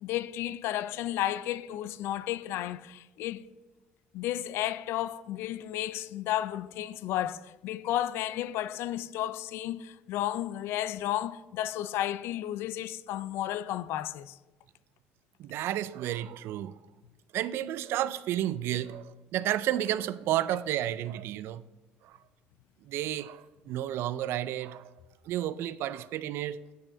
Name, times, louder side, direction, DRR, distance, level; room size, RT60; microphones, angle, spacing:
voice 1, 0.0-3.5 4.1-14.4, left 13 dB, 75° left, 0.4 m, -33 dB
voice 2, 15.4-16.8 17.3-21.7 22.0-22.1 22.9-24.9 25.3-26.6, right 12 dB, 70° right, 0.4 m, -31 dB
8.5 x 6.2 x 5.2 m
supercardioid pair, 95°, 4 cm